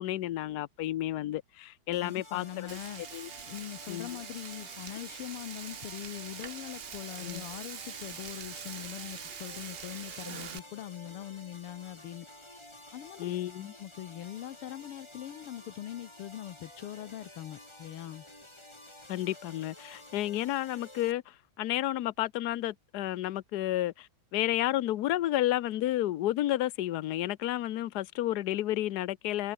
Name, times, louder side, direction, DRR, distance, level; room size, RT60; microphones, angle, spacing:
voice 1, 0.0-2.8 3.1-3.3 3.9-4.1 7.2-7.4 13.2-13.7 19.1-29.5, left 14 dB, 65° left, 1.0 m, -31 dB
sound 1, 1.9-21.1, left 1 dB, 10° left, 3.6 m, -52 dB
voice 2, 2.0-3.0 3.5-12.3 12.9-13.4 13.8-18.3, left 12 dB, 90° left, 1.9 m, -42 dB
Frying (food), 2.7-10.6, right 7 dB, 75° right, 0.5 m, -44 dB
omnidirectional pair, 2.4 m